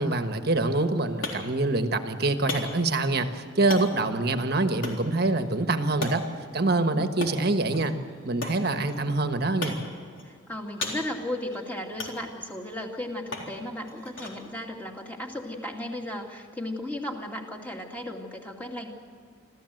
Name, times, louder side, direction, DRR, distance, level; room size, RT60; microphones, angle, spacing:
voice 1, 0.0-6.2 6.5-7.9 8.2-9.7, right 2 dB, 50° right, 7 dB, 1.3 m, -25 dB
sound 1, 0.6-16.2, left 2 dB, 75° left, 3.8 m, -40 dB
voice 2, 10.2-18.9, left 1 dB, 10° left, 1 dB, 2.4 m, -35 dB
26.0 x 15.0 x 7.9 m, 2.1 s
head